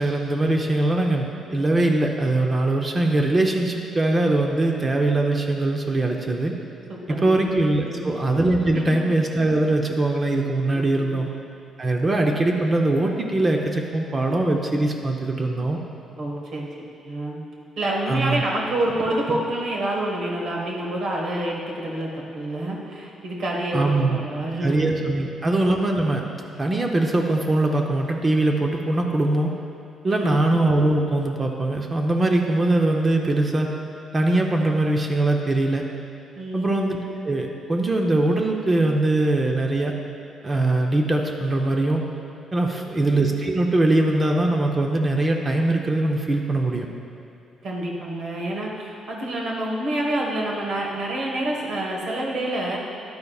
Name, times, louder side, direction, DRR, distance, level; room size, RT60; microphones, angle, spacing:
voice 1, 0.0-6.5 7.1-11.3 11.8-15.8 18.1-18.4 23.7-24.2 24.6-26.2 26.6-29.5 30.0-33.7 34.1-35.8 36.5-39.9 40.4-42.0 42.5-46.9, right 2 dB, 25° right, 2 dB, 0.7 m, -22 dB
voice 2, 7.8-8.2 8.7-8.8 10.7-11.2 16.2-16.7 17.0-17.4 17.8-24.7 25.1-25.2 30.0-30.4 36.3-36.6 42.6-43.0 47.6-52.8, right 1 dB, 70° right, -2 dB, 1.4 m, -28 dB
11.0 x 9.5 x 2.4 m, 2.7 s
cardioid pair, 110°, 0 cm